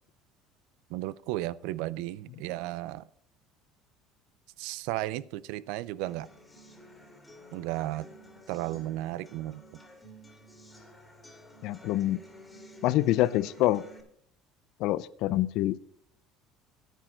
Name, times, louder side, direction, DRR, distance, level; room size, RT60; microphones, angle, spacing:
voice 1, 0.9-3.0 4.6-6.3 7.5-8.1 8.5-9.6, right 16 dB, 75° right, 20 dB, 0.4 m, -34 dB
sound 1, 6.0-14.0, equal, 10° left, 2.0 m, -52 dB
voice 2, 11.6-12.2 12.8-13.8 14.8-15.8, left 15 dB, 60° left, 18 dB, 0.5 m, -26 dB
10.0 x 10.0 x 4.4 m, 0.63 s
cardioid pair, 135°, 0 cm